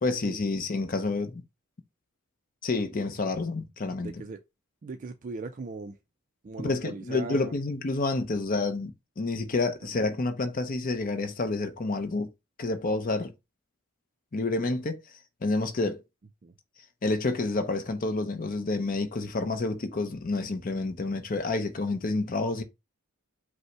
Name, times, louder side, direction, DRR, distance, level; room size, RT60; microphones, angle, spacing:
voice 1, 0.0-1.4 2.6-4.1 6.6-12.3 12.6-13.3 14.3-15.0 15.4-16.0 17.0-22.6, left 3 dB, 40° left, 0.6 m, -29 dB
voice 2, 4.0-4.4 4.8-6.0 6.4-7.5 9.7-9.9 16.4-16.5, right 3 dB, 35° right, 0.3 m, -39 dB
5.3 x 2.1 x 4.5 m
head